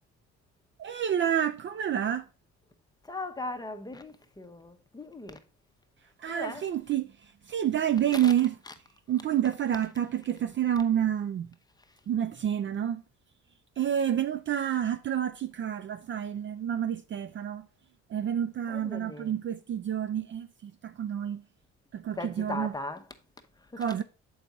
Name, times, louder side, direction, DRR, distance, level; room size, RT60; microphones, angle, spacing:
voice 1, 0.8-2.3 6.2-8.5 9.1-11.5 12.1-13.0 13.8-17.7 18.1-21.4 21.9-22.7 23.8-24.0, right 10 dB, 40° right, 0.4 m, -29 dB
voice 2, 3.0-5.5 6.3-6.6 8.1-8.3 8.7-8.8 11.9-12.0 18.7-19.3 22.2-23.0 23.6-23.8, left 2 dB, 15° left, 0.8 m, -39 dB
6.8 x 4.7 x 3.9 m
cardioid pair, 90°, 30 cm